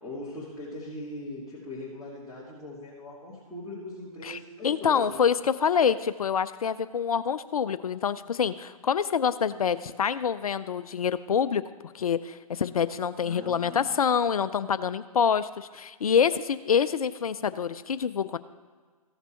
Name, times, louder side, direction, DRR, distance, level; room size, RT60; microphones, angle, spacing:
voice 1, 0.0-5.2 13.2-13.8, left 1 dB, ahead, -12 dB, 2.5 m, -40 dB
voice 2, 4.6-11.6 11.9-18.4, left 7 dB, 70° left, 13 dB, 0.5 m, -26 dB
15.0 x 6.6 x 4.5 m, 1.6 s
figure-of-eight pair, 130°, 19 cm